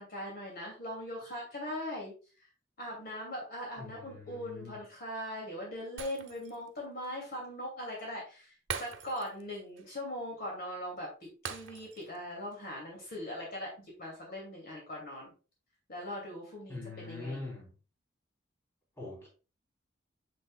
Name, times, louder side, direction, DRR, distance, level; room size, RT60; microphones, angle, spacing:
voice 1, 0.0-2.1 2.8-11.1 11.4-15.3 15.9-17.4, equal, 55° left, 2.6 m, -40 dB
voice 2, 3.8-4.8 16.7-17.7 19.0-19.3, left 3 dB, 15° left, 3.5 m, -43 dB
Shatter, 6.0-6.7 7.0-7.2 8.7-9.5 9.8-9.9 11.4-12.2 12.5-12.7, right 6 dB, 80° right, 0.9 m, -42 dB
6.9 x 6.2 x 2.4 m
head